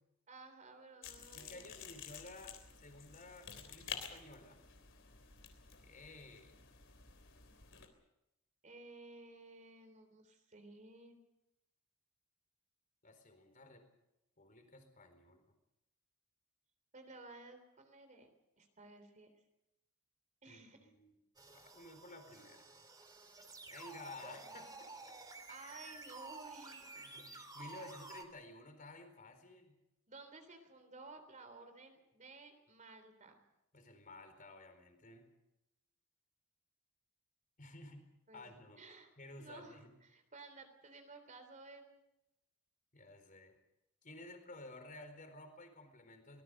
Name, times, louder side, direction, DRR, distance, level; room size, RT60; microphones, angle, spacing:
voice 1, 0.3-1.7 8.6-11.2 16.9-18.3 18.6-19.3 20.4-20.9 25.5-26.9 27.6-27.8 30.1-33.4 38.3-38.4 38.8-39.1 39.4-41.9, right 3 dB, 35° right, 7 dB, 3.4 m, -55 dB
sound 1, 1.0-7.9, left 7 dB, 60° left, 3.5 m, -51 dB
voice 2, 1.3-4.6 5.8-6.6 13.0-13.9 14.4-15.5 20.5-21.2 21.5-22.7 23.7-25.2 26.9-29.8 33.7-35.3 37.6-38.1 38.3-38.8 39.2-39.9 42.9-43.6 44.0-46.4, left 2 dB, 40° left, 7 dB, 4.3 m, -54 dB
sound 2, 21.4-28.2, right 3 dB, 20° right, 2.5 m, -52 dB
24.5 x 20.0 x 6.6 m, 0.89 s
head